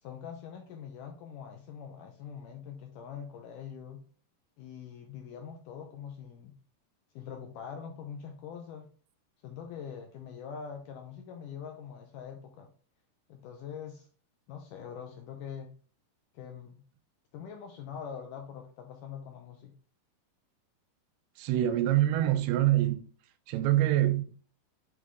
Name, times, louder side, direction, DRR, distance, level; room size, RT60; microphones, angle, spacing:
voice 1, 0.0-4.0 4.6-6.5 7.2-8.9 9.4-12.7 13.3-14.1 14.5-15.7 16.3-16.8 17.3-19.7, left 7 dB, 80° left, 1.9 m, -43 dB
voice 2, 21.4-23.0 23.5-24.2, right 13 dB, 85° right, 2.7 m, -25 dB
8.2 x 3.1 x 3.7 m
omnidirectional pair, 4.5 m